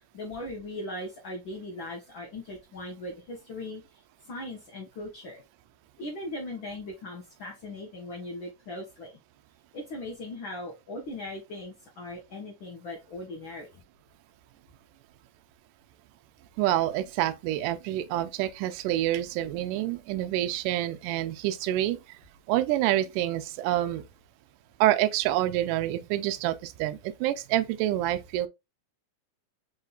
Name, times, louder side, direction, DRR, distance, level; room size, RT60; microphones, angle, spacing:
voice 1, 0.1-3.8 4.3-5.4 6.0-9.1 9.9-13.7, left 1 dB, 85° left, 1.1 m, -39 dB
voice 2, 16.6-22.2 22.5-24.0 24.8-28.5, right 13 dB, 80° right, 2.1 m, -27 dB
5.5 x 4.0 x 2.3 m
omnidirectional pair, 3.9 m